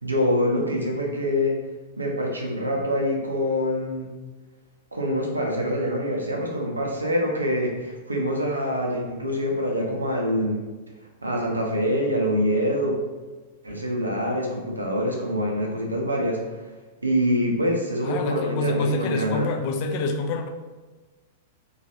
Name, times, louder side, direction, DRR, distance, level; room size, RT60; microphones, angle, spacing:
voice 1, 0.0-1.6 2.0-4.1 4.9-10.6 11.2-13.0 13.6-16.4 17.0-19.5, equal, 85° right, 0 dB, 0.5 m, -25 dB
voice 2, 18.0-20.5, left 2 dB, 45° left, 4 dB, 0.4 m, -26 dB
3.1 x 2.4 x 2.6 m, 1.2 s
figure-of-eight pair, 100°, 0 cm